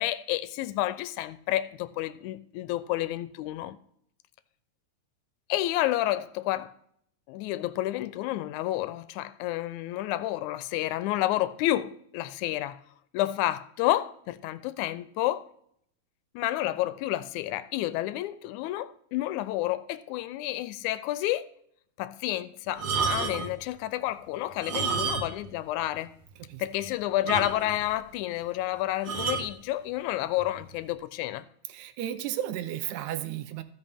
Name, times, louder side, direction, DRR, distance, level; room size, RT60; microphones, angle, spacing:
voice 1, 0.0-3.8 5.5-6.7 7.3-12.8 13.1-15.4 16.4-21.5 22.0-26.1 26.6-31.5, left 15 dB, 85° left, 2.0 m, -30 dB
sound 1, 22.7-23.6 24.5-25.5 25.8-25.9 26.4-26.5 26.8-26.9 27.3-27.9 29.1-29.5 30.4-30.6, right 5 dB, 60° right, 1.3 m, -30 dB
voice 2, 31.7-33.6, right 11 dB, 85° right, 2.2 m, -33 dB
15.5 x 5.5 x 3.5 m
omnidirectional pair, 3.5 m